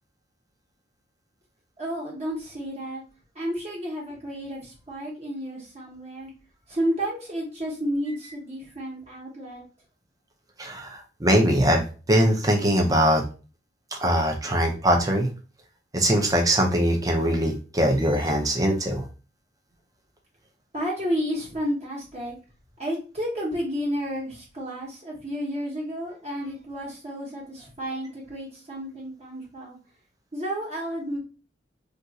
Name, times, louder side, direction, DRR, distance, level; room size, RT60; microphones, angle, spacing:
voice 1, 1.8-3.0 3.3-6.3 6.7-9.6 20.7-22.4 22.8-29.8 30.3-31.2, equal, 35° right, -4 dB, 1.0 m, -31 dB
voice 2, 10.6-13.2 14.0-15.3 15.9-19.0, right 1 dB, 20° right, 2 dB, 0.6 m, -22 dB
2.5 x 2.4 x 4.0 m, 0.35 s
head